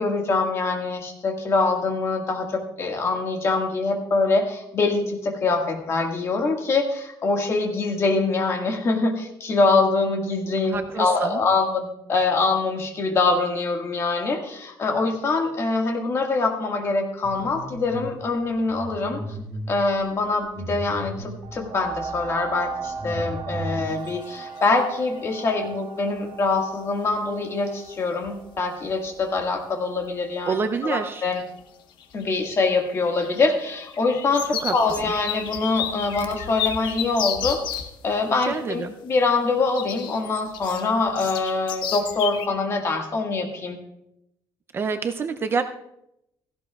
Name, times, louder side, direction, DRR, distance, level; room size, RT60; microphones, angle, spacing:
voice 1, 0.0-2.5 2.8-19.2 19.7-30.6 30.8-31.4 32.1-43.8, left 3 dB, 35° left, 2 dB, 1.8 m, -24 dB
voice 2, 10.7-11.4 30.5-31.3 34.6-34.7 38.3-38.9 44.7-45.6, right 5 dB, 30° right, 7 dB, 0.5 m, -27 dB
sound 1, 17.2-18.1 18.5-21.5 22.2-22.3 22.7-23.9, right 1 dB, 10° left, 3.4 m, -35 dB
sound 2, 21.4-30.7 31.3-31.4, right 5 dB, 45° right, 1.0 m, -38 dB
sound 3, 24.0-24.3 24.6-25.2 27.1-27.2 27.9-28.0 28.2-28.6 28.9-29.5 30.0-30.1 31.2-31.6 31.9-37.9 39.7-42.5, left 9 dB, 70° left, 1.0 m, -32 dB
16.5 x 15.0 x 2.4 m, 0.81 s
cardioid pair, 165°, 8 cm